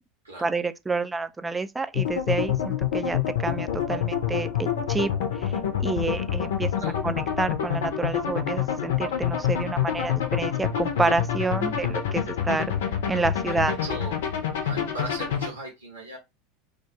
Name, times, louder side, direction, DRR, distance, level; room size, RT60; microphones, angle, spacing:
voice 1, 0.4-5.1 5.4-5.5 5.8-6.7 7.0-12.7 13.1-13.7, right 3 dB, 15° right, 0.3 m, -28 dB
sound 1, 1.9-15.5, left 9 dB, 65° left, 0.5 m, -27 dB
voice 2, 13.5-14.1 14.6-16.2, right 2 dB, 90° right, 0.9 m, -37 dB
2.4 x 2.2 x 2.8 m
figure-of-eight pair, 80°, 0 cm